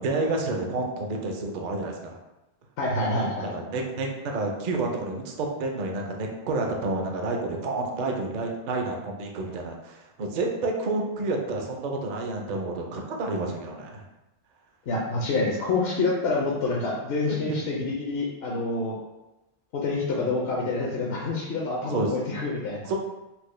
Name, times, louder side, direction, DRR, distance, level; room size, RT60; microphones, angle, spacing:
voice 1, 0.0-2.2 3.5-14.0 17.3-17.6 21.9-22.1 22.9-23.0, right 2 dB, 55° right, 1 dB, 0.5 m, -29 dB
voice 2, 2.8-3.5 14.9-19.0 19.7-22.9, left 3 dB, 65° left, -4 dB, 0.8 m, -27 dB
4.3 x 2.1 x 3.1 m, 0.98 s
omnidirectional pair, 1.2 m